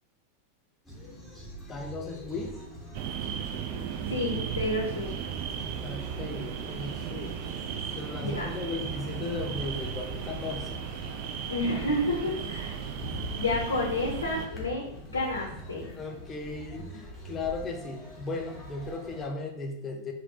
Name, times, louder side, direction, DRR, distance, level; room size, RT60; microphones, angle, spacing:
sound 1, 0.8-19.3, equal, ahead, 0.9 m, -44 dB
voice 1, 1.7-2.5 5.8-7.4 7.9-10.8 15.9-20.1, left 3 dB, 20° left, 2 dB, 0.5 m, -36 dB
sound 2, 2.9-14.5, right 8 dB, 45° right, 0.3 m, -36 dB
voice 2, 4.1-5.1 8.2-8.5 11.5-12.8 13.3-15.9, left 1 dB, 75° left, -2 dB, 0.6 m, -30 dB
3.8 x 2.2 x 2.7 m, 0.82 s
figure-of-eight pair, 90°, 0 cm